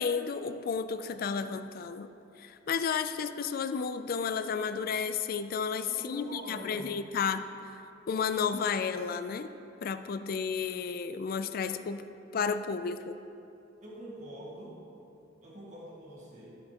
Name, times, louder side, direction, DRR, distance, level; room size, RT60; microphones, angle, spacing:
voice 1, 0.0-2.1 2.4-7.5 8.1-9.5 9.8-12.0 12.3-13.2, left 6 dB, 50° left, 11 dB, 0.3 m, -32 dB
voice 2, 5.6-7.0 13.8-14.8 15.4-16.6, equal, 40° right, -5 dB, 1.6 m, -45 dB
12.5 x 6.5 x 2.9 m, 2.8 s
head